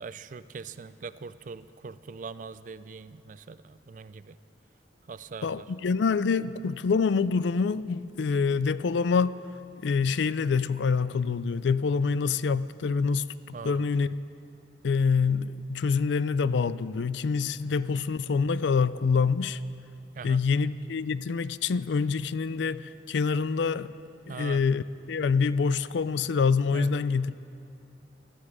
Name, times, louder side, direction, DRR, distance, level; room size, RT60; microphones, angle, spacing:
voice 1, 0.0-4.4 5.1-5.7 13.5-13.8 17.6-17.7 20.1-20.4 24.3-24.6 26.7-26.9, right 5 dB, 45° right, 15 dB, 0.4 m, -42 dB
voice 2, 5.4-9.4 9.8-13.3 13.6-14.2 14.8-19.6 20.2-23.9 24.3-27.4, left 5 dB, 75° left, 16 dB, 0.4 m, -26 dB
18.0 x 13.0 x 4.8 m, 2.6 s
head